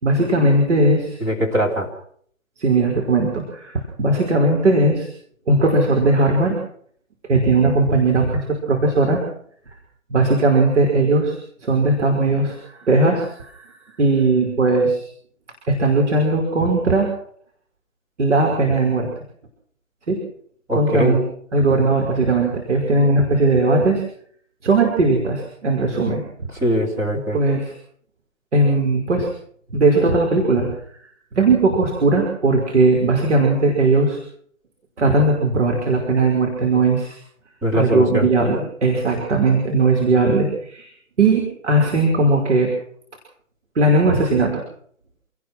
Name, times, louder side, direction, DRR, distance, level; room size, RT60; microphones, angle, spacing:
voice 1, 0.0-1.2 2.6-5.1 5.5-6.6 7.3-9.2 10.1-13.6 14.0-15.1 15.7-17.1 18.2-19.1 20.1-20.2 20.7-21.2 21.5-24.0 24.6-26.2 27.3-27.7 28.5-29.3 29.7-30.8 31.3-34.2 35.0-37.2 37.7-40.9 41.2-42.7 43.8-44.5, right 2 dB, 60° right, 1 dB, 5.4 m, -18 dB
voice 2, 1.2-1.9 20.7-21.2 26.5-27.4 37.6-38.3, equal, 5° right, -3 dB, 3.0 m, -21 dB
27.5 x 18.0 x 6.2 m, 0.62 s
figure-of-eight pair, 150°, 40 cm